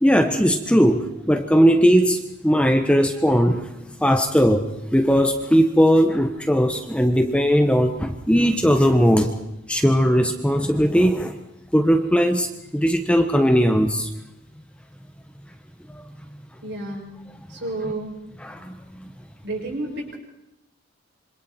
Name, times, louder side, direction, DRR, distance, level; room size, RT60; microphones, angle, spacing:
voice 1, 0.0-3.7 4.0-4.6 4.9-9.3 9.7-11.4 11.7-14.1 15.9-16.0 18.4-18.7 19.0-19.1, equal, 5° left, 6 dB, 1.2 m, -18 dB
voice 2, 16.6-17.1 17.5-18.2 19.4-20.2, right 2 dB, 55° right, 0 dB, 6.8 m, -30 dB
26.5 x 26.0 x 4.5 m, 0.87 s
head